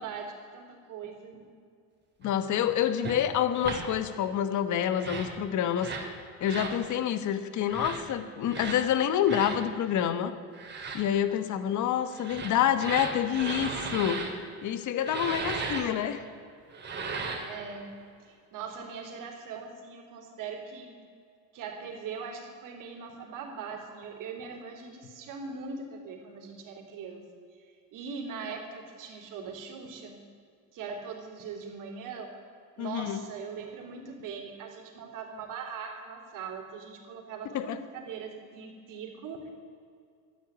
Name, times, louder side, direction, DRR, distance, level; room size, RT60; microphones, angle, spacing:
voice 1, 0.0-1.5 17.5-20.9 21.5-27.3 27.6-30.2 30.7-32.4 32.8-39.5, right 5 dB, 55° right, 1 dB, 3.7 m, -41 dB
voice 2, 2.2-5.9 6.4-10.3 10.9-14.2 14.6-16.2 32.8-33.2 37.5-37.8, left 10 dB, 50° left, 11 dB, 1.3 m, -27 dB
sound 1, 3.0-3.2 3.6-3.8 4.9-5.3 5.8-6.1 6.4-6.8 7.7-8.0 8.5-8.8 9.3-9.6 10.5-11.0 12.1-14.3 15.0-15.8 16.7-17.5, right 4 dB, 25° right, 3.1 m, -35 dB
13.0 x 10.0 x 9.8 m, 2.3 s
supercardioid pair, 110°, 39 cm